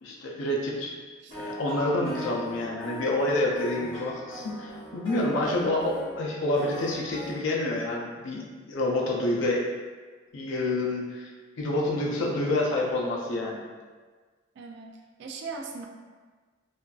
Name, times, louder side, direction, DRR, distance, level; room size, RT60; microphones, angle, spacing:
voice 1, 0.0-0.9 1.4-9.6 10.3-11.3 11.6-13.6, left 1 dB, 75° left, -2 dB, 0.5 m, -28 dB
sound 1, 1.3-7.3, equal, 30° left, 1.0 m, -40 dB
voice 2, 2.0-2.4 14.6-15.9, right 4 dB, 60° right, 3 dB, 0.3 m, -38 dB
2.5 x 2.3 x 2.3 m, 1.4 s
head